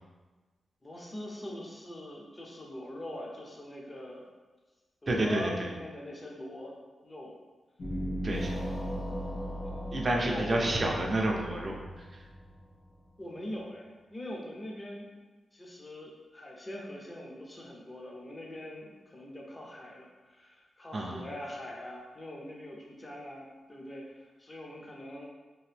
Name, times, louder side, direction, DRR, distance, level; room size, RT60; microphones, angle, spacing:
voice 1, 0.8-4.2 5.0-6.8 7.0-7.3 9.6-10.7 13.2-13.8 14.1-15.1 15.5-25.3, left 1 dB, 20° left, -1 dB, 0.6 m, -42 dB
voice 2, 5.1-5.7 8.2-8.5 9.9-12.2 20.9-21.2, right 1 dB, 35° right, 0 dB, 0.5 m, -29 dB
sound 1, 7.8-13.0, equal, 55° left, 1.0 m, -37 dB
2.9 x 2.6 x 3.3 m, 1.3 s
wide cardioid pair, 125°, 0 cm